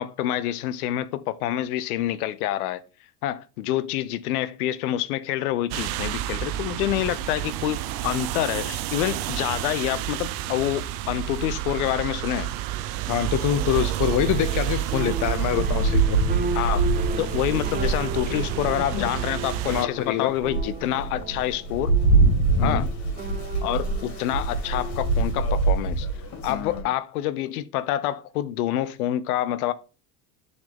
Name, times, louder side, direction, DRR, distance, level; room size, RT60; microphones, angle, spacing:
voice 1, 0.0-2.8 3.2-12.5 16.5-16.9 17.2-22.0 22.6-22.9 23.6-26.1 26.4-29.7, left 13 dB, 85° left, 0.6 m, -27 dB
sound 1, 5.7-19.9, right 13 dB, 65° right, 0.7 m, -30 dB
voice 2, 13.1-16.2 18.3-18.4 18.9-19.1 19.7-20.3 22.6-22.9 26.5-26.8, left 11 dB, 45° left, 0.5 m, -25 dB
sound 2, 14.2-25.4, right 4 dB, 20° right, 0.7 m, -36 dB
Rain, 15.6-19.1 19.6-19.7 20.2-26.8, right 3 dB, 70° left, 2.1 m, -24 dB
8.7 x 4.0 x 3.5 m
supercardioid pair, 90°, 43 cm